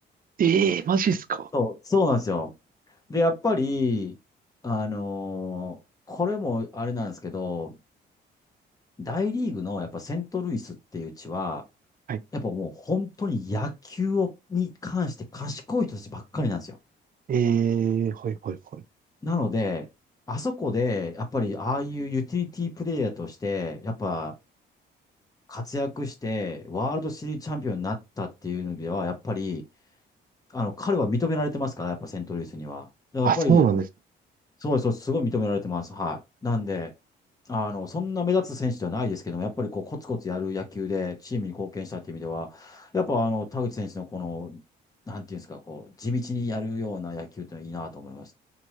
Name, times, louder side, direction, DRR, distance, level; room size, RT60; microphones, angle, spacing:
voice 1, 0.4-1.5 12.1-12.2 17.3-18.8 33.2-33.8, right 7 dB, 45° right, 0.6 m, -23 dB
voice 2, 1.5-2.5 3.1-4.1 4.6-5.8 6.1-7.8 9.0-11.6 12.3-16.8 19.2-19.9 20.3-24.3 25.5-29.6 30.5-32.9 33.1-33.6 34.6-36.9 37.5-44.6 45.1-48.3, left 3 dB, 20° left, 1.0 m, -29 dB
3.0 x 2.6 x 2.9 m
cardioid pair, 90°, 20 cm